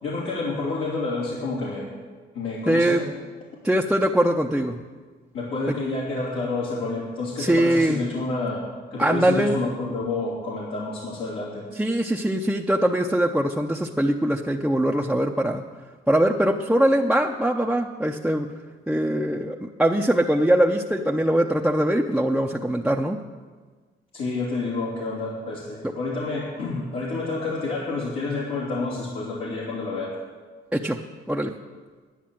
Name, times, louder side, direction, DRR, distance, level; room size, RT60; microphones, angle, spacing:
voice 1, 0.0-1.9 2.3-3.1 5.3-8.6 8.9-11.7 24.1-30.2, left 3 dB, 80° left, -7 dB, 2.9 m, -29 dB
voice 2, 2.7-3.0 3.6-4.8 7.4-8.0 9.0-9.6 11.7-15.6 16.1-18.5 18.9-23.2 25.8-25.9 30.7-31.0 31.3-31.5, right 1 dB, 5° right, -1 dB, 0.7 m, -22 dB
10.5 x 9.8 x 7.6 m, 1.4 s
cardioid pair, 90°, 20 cm